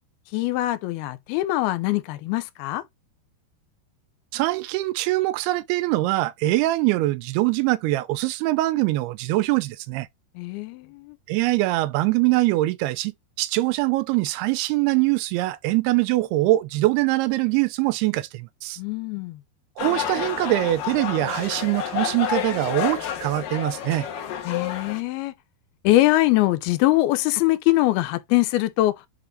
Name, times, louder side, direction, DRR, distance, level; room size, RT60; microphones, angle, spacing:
voice 1, 0.3-2.8 10.4-11.2 18.8-19.4 24.5-25.3 25.8-29.0, left 17 dB, 80° left, 2.3 m, -22 dB
voice 2, 4.3-10.1 11.3-13.1 13.4-18.8 19.8-24.1, right 18 dB, 80° right, 2.4 m, -23 dB
sound 1, 19.8-25.0, left 9 dB, 65° left, 2.7 m, -29 dB
10.0 x 3.7 x 2.6 m
omnidirectional pair, 4.9 m